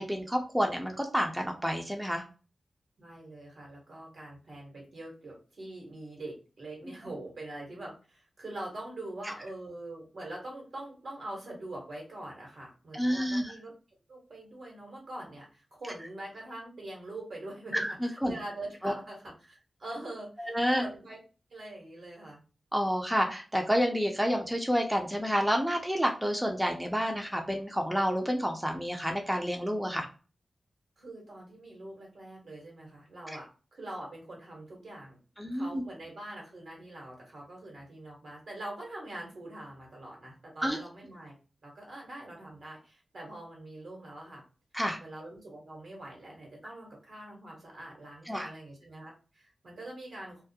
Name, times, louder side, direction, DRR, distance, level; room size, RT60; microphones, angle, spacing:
voice 1, 0.0-2.2 12.9-13.5 17.7-18.4 18.8-18.9 20.4-20.8 22.7-30.1 35.4-35.8 40.6-40.8 44.7-45.0 48.3-48.5, equal, 5° right, 2 dB, 0.5 m, -29 dB
voice 2, 3.0-13.7 14.1-21.2 21.5-22.4 31.0-35.2 35.5-41.3 41.6-44.4 45.0-50.4, right 1 dB, 75° right, -1 dB, 1.1 m, -44 dB
2.3 x 2.0 x 2.6 m, 0.35 s
cardioid pair, 40°, 0 cm